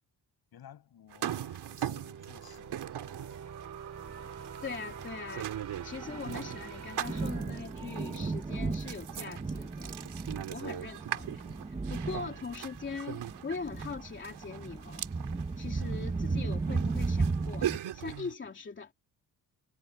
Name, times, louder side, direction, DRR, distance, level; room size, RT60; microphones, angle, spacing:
voice 1, 0.5-2.9, left 10 dB, 65° left, 7.4 m, -54 dB
sound 1, 1.1-18.3, right 11 dB, 80° right, 3.0 m, -41 dB
sound 2, 1.4-9.1, right 7 dB, 40° right, 5.2 m, -47 dB
Thunder, 4.1-17.8, right 3 dB, 15° right, 1.4 m, -35 dB
voice 2, 4.6-5.5 5.8-10.0 10.5-15.1 15.6-18.9, left 5 dB, 30° left, 2.9 m, -41 dB
wide cardioid pair, 170°, 40 cm